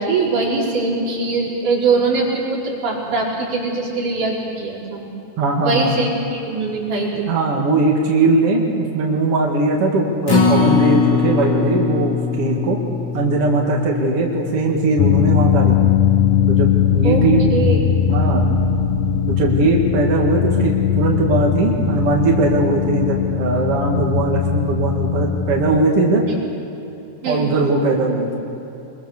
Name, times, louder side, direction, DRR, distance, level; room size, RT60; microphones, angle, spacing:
voice 1, 0.0-5.0 5.6-7.4 17.0-17.2 17.5-17.8 26.3-26.4 27.2-27.5, right 3 dB, 85° right, -5 dB, 6.2 m, -22 dB
voice 2, 5.4-6.0 7.1-12.8 13.1-15.8 16.5-17.5 18.1-18.4 19.3-26.2 27.3-28.4, right 2 dB, 50° right, -1 dB, 3.0 m, -19 dB
Acoustic guitar, 10.3-16.6 17.0-17.1 17.5-17.6, left 5 dB, 40° left, 3.6 m, -22 dB
sound 1, 15.0-25.8, left 8 dB, 70° left, 1.9 m, -19 dB
24.0 x 22.5 x 6.8 m, 3.0 s
omnidirectional pair, 3.5 m